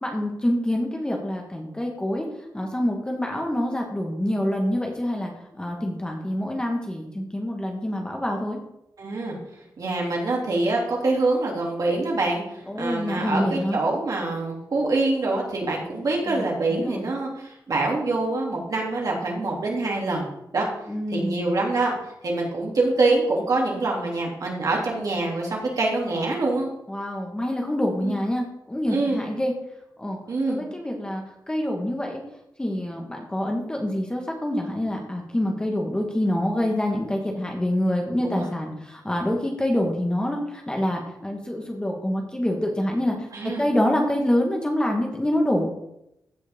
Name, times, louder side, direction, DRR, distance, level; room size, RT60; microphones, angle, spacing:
voice 1, 0.0-2.3 2.5-8.6 12.7-13.8 16.3-17.0 20.9-21.5 26.9-29.5 30.0-30.2 30.5-32.2 32.6-45.7, left 1 dB, 10° left, 1 dB, 1.6 m, -26 dB
voice 2, 9.0-9.3 9.8-12.4 12.7-20.3 20.5-20.7 21.1-21.9 22.2-26.7 28.0-28.2 28.9-29.2 30.3-30.6 38.2-38.5 43.3-43.6, right 2 dB, 55° right, -2 dB, 2.9 m, -25 dB
15.5 x 6.2 x 3.7 m, 0.82 s
wide cardioid pair, 145°, 7 cm